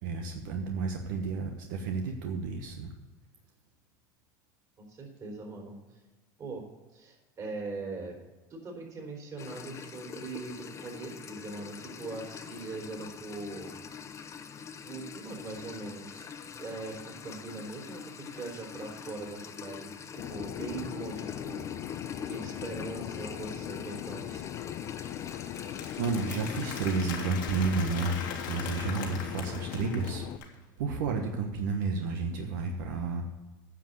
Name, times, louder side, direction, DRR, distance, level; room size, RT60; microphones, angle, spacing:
voice 1, 0.0-2.9 26.0-30.3 30.8-33.2, right 4 dB, 80° right, 3 dB, 1.2 m, -31 dB
voice 2, 4.8-6.0 6.4-8.2 8.5-13.7 14.8-16.3 16.6-21.7 22.3-24.4, right 3 dB, 35° right, 1 dB, 3.5 m, -41 dB
sound 1, 9.4-27.0, left 7 dB, 30° left, 0.9 m, -44 dB
Fixed-wing aircraft airplane, 20.2-30.4, left 12 dB, 50° left, 0.6 m, -40 dB
Applause, 24.7-30.5, left 7 dB, 85° left, 2.0 m, -41 dB
10.0 x 6.1 x 7.9 m, 1.2 s
supercardioid pair, 115°, 10 cm